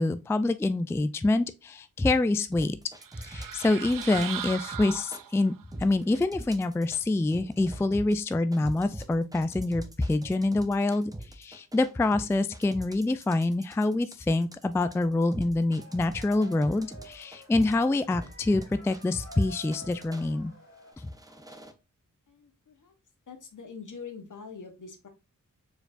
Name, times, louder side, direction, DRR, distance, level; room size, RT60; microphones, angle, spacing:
voice 1, 0.0-2.8 3.2-5.5 5.8-20.5, left 2 dB, 10° left, 0.3 m, -26 dB
sound 1, 2.5-5.2 5.7-7.0 7.3-20.3 20.9-21.7, right 1 dB, 10° right, 0.7 m, -42 dB
sound 2, 3.0-5.6, right 9 dB, 75° right, 0.5 m, -38 dB
sound 3, 15.7-20.9, equal, 40° left, 2.5 m, -50 dB
voice 2, 22.3-22.9 23.3-25.1, left 5 dB, 65° left, 1.2 m, -44 dB
4.6 x 4.5 x 2.5 m
cardioid pair, 50°, 33 cm